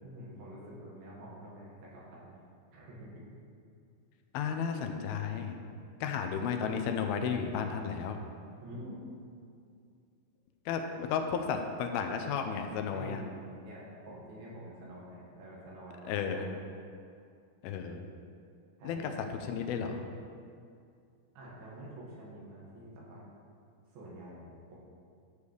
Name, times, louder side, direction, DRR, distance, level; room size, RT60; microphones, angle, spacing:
voice 1, 0.0-2.3 2.7-3.1 6.0-6.3 8.6-9.0 12.9-16.5 18.8-19.2 21.4-23.2 23.9-24.8, right 1 dB, 75° right, -6 dB, 3.6 m, -48 dB
voice 2, 4.3-5.6 6.0-8.2 10.7-13.2 16.1-16.5 17.6-18.0 18.8-20.1, left 6 dB, 85° left, 5 dB, 2.5 m, -33 dB
12.0 x 6.9 x 3.3 m, 2.4 s
omnidirectional pair, 4.4 m